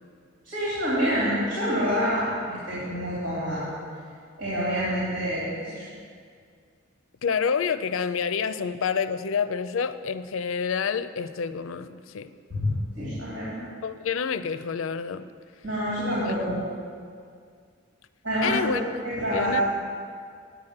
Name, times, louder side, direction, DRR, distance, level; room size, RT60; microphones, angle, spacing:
voice 1, 0.4-3.7 4.4-5.9 12.5-13.6 15.6-16.6 18.2-19.6, equal, 85° right, -9 dB, 3.3 m, -27 dB
voice 2, 7.2-12.3 13.8-15.3 16.3-16.4 18.4-18.8 19.3-19.6, left 6 dB, 90° left, 13 dB, 0.4 m, -28 dB
9.1 x 6.5 x 8.6 m, 2.2 s
head